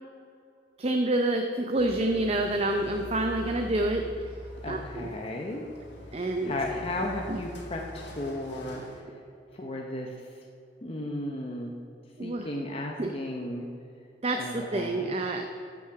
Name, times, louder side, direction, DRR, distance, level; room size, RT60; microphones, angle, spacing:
voice 1, 0.8-4.1 4.7-5.1 6.1-6.5 7.3-7.4 12.2-12.5 13.0-13.1 14.2-15.4, right 2 dB, 35° right, 4 dB, 0.6 m, -28 dB
sound 1, 1.8-9.0, left 1 dB, 75° left, 2.1 m, -43 dB
voice 2, 4.6-5.7 6.1-9.0 9.5-10.4 10.8-11.7 12.2-13.6 14.4-15.1, left 1 dB, 30° left, 0 dB, 0.8 m, -35 dB
14.5 x 6.2 x 5.8 m, 2.6 s
head